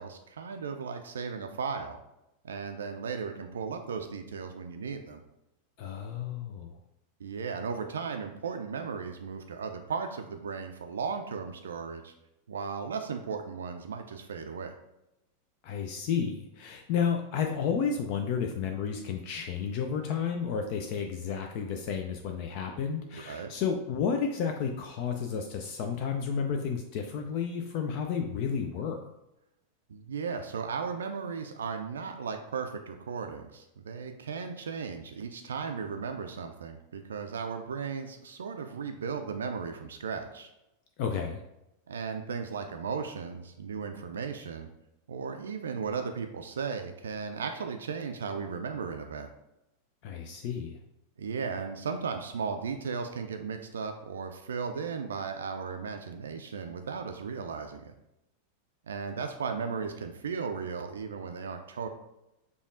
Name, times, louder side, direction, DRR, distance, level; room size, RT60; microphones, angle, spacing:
voice 1, 0.0-2.0 2.4-5.2 7.2-12.1 12.5-14.7 23.1-23.5 29.9-40.5 41.9-44.7 45.1-49.3 51.2-57.9 58.9-61.9, right 5 dB, 65° right, 5 dB, 0.3 m, -36 dB
voice 2, 5.8-6.7 15.6-29.0 41.0-41.4 50.0-50.8, left 6 dB, 45° left, 4 dB, 0.3 m, -31 dB
5.1 x 2.4 x 2.5 m, 0.89 s
figure-of-eight pair, 90°, 0 cm